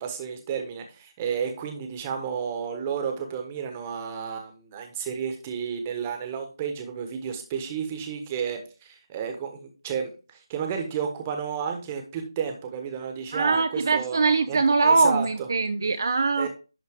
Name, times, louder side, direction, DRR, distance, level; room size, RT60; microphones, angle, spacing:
voice 1, 0.0-14.2 14.5-14.6 14.8-15.3 16.4-16.5, right 7 dB, 20° right, 5 dB, 1.2 m, -32 dB
voice 2, 13.3-16.5, right 3 dB, 55° right, 9 dB, 0.5 m, -22 dB
11.0 x 3.9 x 3.6 m, 0.33 s
figure-of-eight pair, 160°, 2 cm